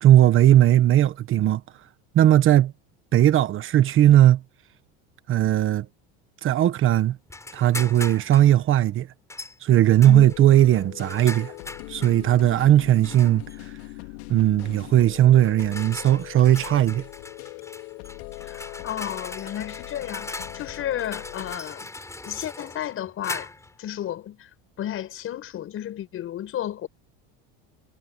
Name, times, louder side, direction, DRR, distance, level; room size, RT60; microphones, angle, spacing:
voice 1, 0.0-1.6 2.1-2.7 3.1-4.4 5.3-5.8 6.4-7.2 7.5-9.1 9.6-11.5 11.9-13.4 14.3-17.0, right 12 dB, 40° right, 1.3 m, -18 dB
sound 1, 7.3-8.5 9.3-9.6 10.0-12.2 13.0-13.6 14.6-14.8 15.4-23.8, left 2 dB, 10° left, 7.5 m, -39 dB
sound 2, 10.1-21.6, left 24 dB, 85° left, 3.4 m, -41 dB
voice 2, 18.4-21.9 22.2-23.5 23.8-24.5 24.8-26.9, left 11 dB, 40° left, 7.0 m, -32 dB
cardioid pair, 135°, 32 cm